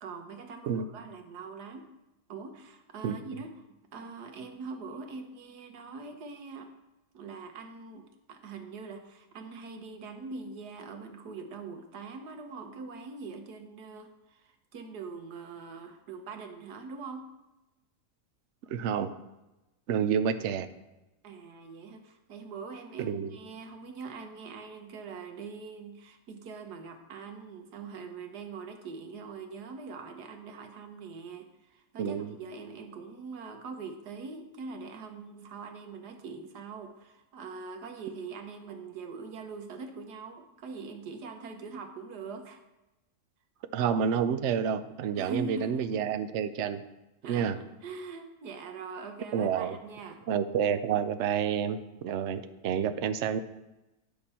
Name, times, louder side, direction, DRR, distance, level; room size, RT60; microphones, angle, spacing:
voice 1, 0.0-1.9 2.3-3.6 3.9-6.7 7.1-17.3 21.2-42.6 45.1-46.0 47.2-50.2, right 4 dB, 90° right, 5 dB, 1.6 m, -43 dB
voice 2, 18.7-19.1 19.9-20.7 23.0-23.3 32.0-32.3 43.7-46.8 47.3-47.6 49.3-49.8 50.3-53.4, right 8 dB, 65° right, 11 dB, 0.8 m, -29 dB
10.5 x 6.7 x 4.3 m, 0.99 s
omnidirectional pair, 1.7 m